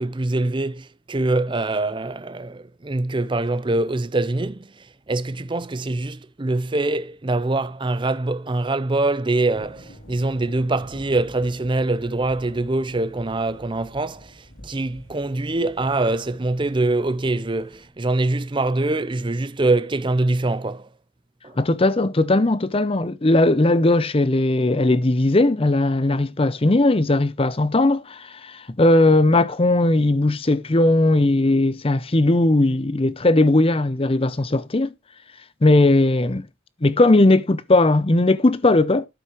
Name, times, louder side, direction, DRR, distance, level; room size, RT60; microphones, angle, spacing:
voice 1, 0.0-4.7 5.1-20.9 21.4-21.5, right 2 dB, 25° right, 0.6 m, -24 dB
sound 1, 9.5-17.9, equal, 75° left, 3.2 m, -47 dB
voice 2, 21.6-34.9 35.6-36.5 36.8-39.1, left 2 dB, 30° left, 0.6 m, -18 dB
13.0 x 7.2 x 3.1 m
head